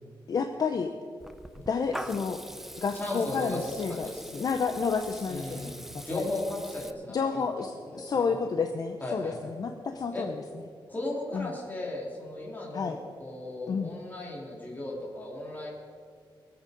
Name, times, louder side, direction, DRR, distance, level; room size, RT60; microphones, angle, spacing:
voice 1, 0.3-0.9 1.7-2.4 2.8-5.7 6.1-6.2 7.1-10.3 11.3-11.5 12.7-13.0 13.7-13.9, left 5 dB, 45° left, 6 dB, 0.7 m, -30 dB
Water tap faucet / Liquid, 1.2-6.9, equal, 5° right, 0.6 m, -43 dB
voice 2, 3.0-4.4 5.3-5.7 6.0-8.3 9.0-9.5 10.1-10.2 10.9-15.7, left 2 dB, 20° left, -4 dB, 3.3 m, -36 dB
22.5 x 8.0 x 5.2 m, 2.1 s
wide cardioid pair, 165°, 9 cm